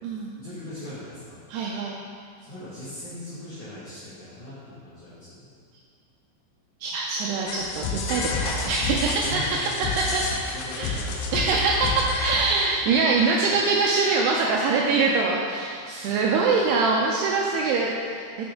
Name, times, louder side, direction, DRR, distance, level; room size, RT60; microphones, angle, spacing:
voice 1, 0.4-1.4 2.4-5.5 9.2-11.3 13.4-13.6 16.1-16.3, left 1 dB, 50° left, -14 dB, 2.7 m, -40 dB
voice 2, 1.5-2.0 6.8-9.4 10.0-10.2 10.8-10.9 11.3-18.4, right 4 dB, 90° right, -2 dB, 2.3 m, -24 dB
sound 1, 7.5-12.9, left 3 dB, 80° left, 2.9 m, -30 dB
8.6 x 6.0 x 3.6 m, 2.1 s
omnidirectional pair, 5.3 m